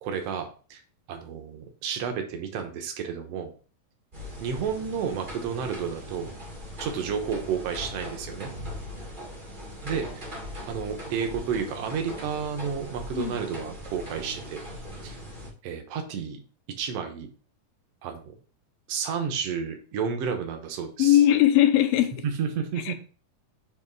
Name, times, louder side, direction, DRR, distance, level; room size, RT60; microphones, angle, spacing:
voice 1, 0.0-0.8 1.1-3.5 4.4-6.3 6.8-8.5 9.8-10.2 10.7-14.6 15.0-15.2 15.6-16.4 16.8-17.3 18.0-18.4 18.9-21.2 22.2-22.9, right 6 dB, 70° right, 5 dB, 1.5 m, -31 dB
sound 1, 4.1-15.5, equal, 55° right, 0.5 m, -40 dB
voice 2, 21.0-22.1 22.9-23.0, left 12 dB, 90° left, 7 dB, 2.5 m, -19 dB
7.1 x 3.1 x 4.5 m, 0.38 s
omnidirectional pair, 4.0 m